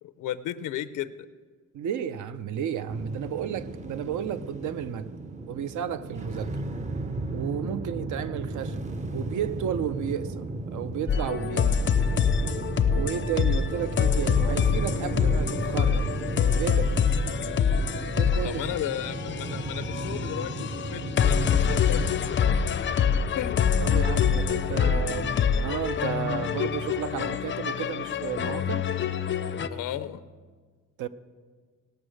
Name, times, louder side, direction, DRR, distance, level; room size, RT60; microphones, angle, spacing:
voice 1, 0.0-1.1 18.4-22.6 23.4-23.6 29.7-30.2, left 11 dB, 80° left, 12 dB, 0.6 m, -34 dB
voice 2, 1.7-5.1 5.5-6.6 7.3-8.8 9.1-10.4 10.7-11.9 12.9-16.1 16.6-16.9 18.2-18.6 23.8-28.9 31.0-31.1, right 9 dB, 70° right, 12 dB, 0.6 m, -32 dB
sound 1, 2.9-21.9, right 2 dB, 25° right, 0.6 m, -34 dB
sound 2, 11.1-29.7, left 7 dB, 40° left, 0.5 m, -25 dB
18.0 x 6.3 x 6.3 m, 1.5 s
cardioid pair, 140°, 31 cm